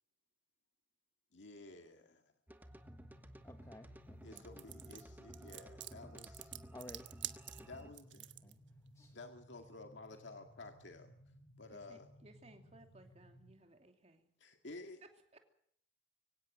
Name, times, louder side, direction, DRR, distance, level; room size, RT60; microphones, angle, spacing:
voice 1, 1.3-2.3 4.2-6.5 7.7-8.2 9.1-11.1 11.6-12.1 14.4-15.0, left 2 dB, 75° left, 5 dB, 2.0 m, -53 dB
sound 1, 2.5-7.9, equal, 10° right, 1.2 m, -55 dB
sound 2, 2.7-13.6, equal, 45° left, 7.6 m, -62 dB
voice 2, 3.4-4.4 6.7-7.1 7.6-7.7 8.4-8.6 8.9-9.2, left 1 dB, 15° left, 6 dB, 1.2 m, -54 dB
sound 3, 4.4-8.5, right 13 dB, 70° right, 1.3 m, -47 dB
voice 3, 11.7-14.3 15.0-15.4, right 2 dB, 35° right, 5 dB, 2.8 m, -61 dB
23.5 x 17.0 x 7.6 m, 0.67 s
head